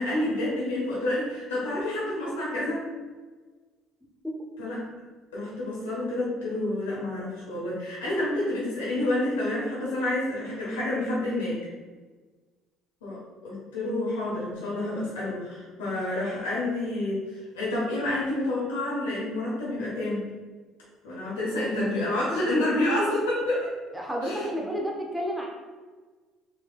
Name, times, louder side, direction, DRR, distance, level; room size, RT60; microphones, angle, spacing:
voice 1, 0.0-2.8 4.6-4.8 5.3-11.6 13.0-13.2 13.4-20.2 21.0-23.7 24.2-24.5, left 1 dB, 90° left, -6 dB, 1.3 m, -28 dB
voice 2, 23.9-25.5, equal, 5° right, -2 dB, 1.0 m, -30 dB
3.8 x 3.3 x 2.4 m, 1.4 s
hypercardioid pair, 60°, 0 cm